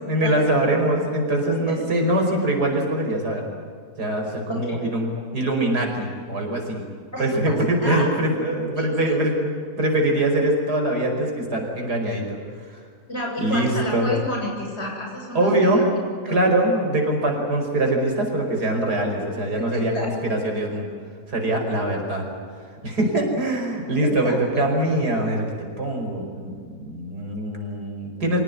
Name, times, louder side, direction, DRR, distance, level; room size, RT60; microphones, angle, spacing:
voice 1, 0.1-3.4 4.0-5.1 5.3-6.8 7.2-12.4 13.4-14.1 15.3-15.8 16.2-20.9 21.3-22.2 22.8-28.4, right 1 dB, 85° right, 1 dB, 5.8 m, -23 dB
voice 2, 4.5-4.8 7.1-8.0 8.7-9.2 13.1-16.4 19.7-20.1 24.0-24.6, left 1 dB, 40° left, -1 dB, 7.9 m, -31 dB
26.0 x 17.5 x 9.8 m, 2.1 s
omnidirectional pair, 1.7 m